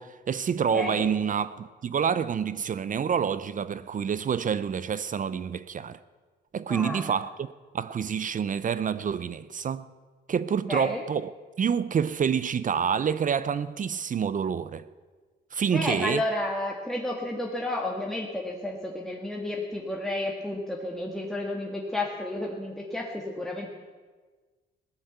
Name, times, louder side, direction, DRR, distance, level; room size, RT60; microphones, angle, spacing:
voice 1, 0.0-6.0 6.5-9.9 10.3-14.8 15.5-16.2, right 7 dB, 40° right, 0.6 m, -28 dB
voice 2, 0.7-1.1 6.7-7.1 10.7-11.0 15.7-23.7, left 1 dB, ahead, 1.9 m, -31 dB
17.0 x 10.0 x 8.1 m
cardioid pair, 90°, 20 cm